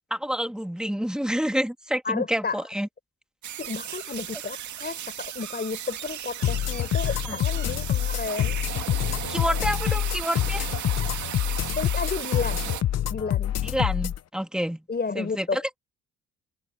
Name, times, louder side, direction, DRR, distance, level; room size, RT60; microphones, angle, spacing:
voice 1, 0.1-2.9 7.2-7.4 9.3-10.7 13.6-14.8 15.1-15.8, equal, 5° right, 2.4 m, -28 dB
voice 2, 2.0-2.6 3.6-8.6 11.8-12.7 13.1-13.5 14.9-15.6, left 4 dB, 35° left, 5.5 m, -32 dB
sound 1, 3.4-12.8, right 11 dB, 70° right, 2.4 m, -35 dB
sound 2, 6.4-14.2, left 11 dB, 55° left, 0.9 m, -26 dB
cardioid pair, 90°, 30 cm